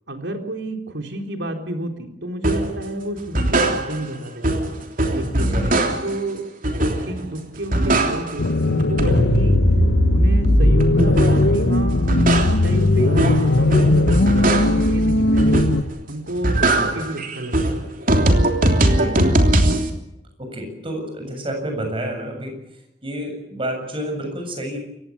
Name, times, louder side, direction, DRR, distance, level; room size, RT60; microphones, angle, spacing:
voice 1, 0.1-4.6 5.1-9.6 10.1-15.6 16.1-17.8, right 1 dB, 80° right, 4 dB, 3.7 m, -30 dB
sound 1, 2.4-2.8 3.2-4.2 4.4-6.2 6.6-7.3 7.6-8.5 8.8-11.5 11.9-14.9 15.4-16.0 16.3-19.9, right 1 dB, 50° right, 3.2 m, -20 dB
voice 2, 5.4-5.8 16.6-17.0 18.9-19.2 20.4-22.6 23.0-24.8, right 1 dB, 30° right, 4 dB, 7.4 m, -29 dB
sound 2, 8.4-15.8, left 2 dB, 75° left, 1.0 m, -18 dB
28.5 x 16.0 x 8.6 m, 0.84 s
head